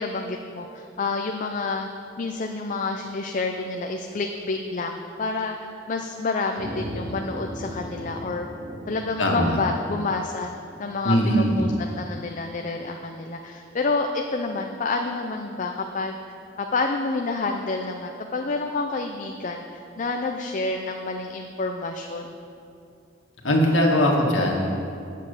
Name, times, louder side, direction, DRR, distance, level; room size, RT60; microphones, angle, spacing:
voice 1, 0.0-1.9 2.2-5.6 5.9-8.5 8.9-10.5 10.8-11.7 12.0-16.2 16.6-22.3, left 3 dB, 40° left, 3 dB, 0.5 m, -28 dB
sound 1, 6.6-11.4, equal, 90° right, 2.4 m, -37 dB
voice 2, 9.2-9.6 11.0-11.7 23.4-24.8, equal, 90° left, -1 dB, 1.8 m, -20 dB
9.5 x 7.5 x 6.7 m, 2.5 s
head